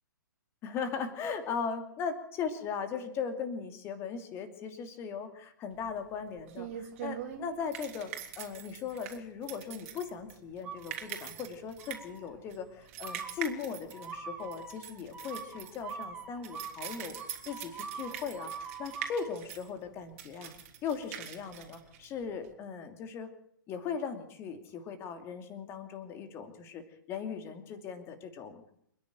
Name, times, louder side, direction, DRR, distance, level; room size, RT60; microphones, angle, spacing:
voice 1, 0.6-17.2 17.4-20.5 20.8-23.3 23.7-26.8 27.1-28.7, left 6 dB, 20° left, 8 dB, 2.8 m, -38 dB
sound 1, 5.8-22.5, right 10 dB, 35° right, 3.4 m, -44 dB
sound 2, 10.6-11.4 11.8-12.3 13.0-19.3, right 5 dB, 10° right, 3.9 m, -44 dB
28.0 x 10.5 x 9.2 m, 0.72 s
figure-of-eight pair, 120°, 11 cm